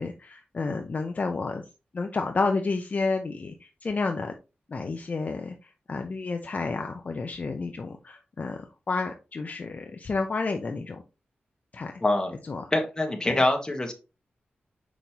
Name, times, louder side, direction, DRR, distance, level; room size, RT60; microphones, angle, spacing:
voice 1, 0.0-1.6 1.9-4.3 4.7-11.0 11.7-11.9 12.5-12.7 13.3-13.4, left 3 dB, 45° left, 5 dB, 0.7 m, -30 dB
voice 2, 12.0-12.3 12.7-13.9, left 2 dB, 20° left, 3 dB, 1.5 m, -24 dB
6.2 x 5.3 x 2.9 m, 0.29 s
wide cardioid pair, 120°, 4 cm